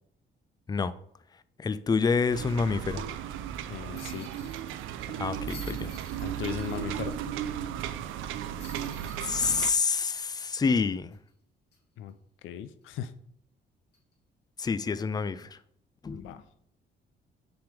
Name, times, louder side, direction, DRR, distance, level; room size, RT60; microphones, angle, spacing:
voice 1, 1.6-3.0 5.2-6.0 9.2-11.1 14.6-15.6 16.0-16.4, left 5 dB, 20° left, 0.4 m, -28 dB
sound 1, 2.3-9.7, right 10 dB, 85° right, 0.5 m, -35 dB
voice 2, 3.7-4.3 6.2-7.2 12.0-12.1 12.4-13.1 16.1-16.4, left 10 dB, 85° left, 0.5 m, -37 dB
sound 2, 3.9-7.2 7.5-7.6 8.6-11.3 11.7-11.8 13.9-14.1, left 4 dB, 55° left, 1.7 m, -52 dB
5.8 x 3.8 x 5.0 m
cardioid pair, 90°, 20 cm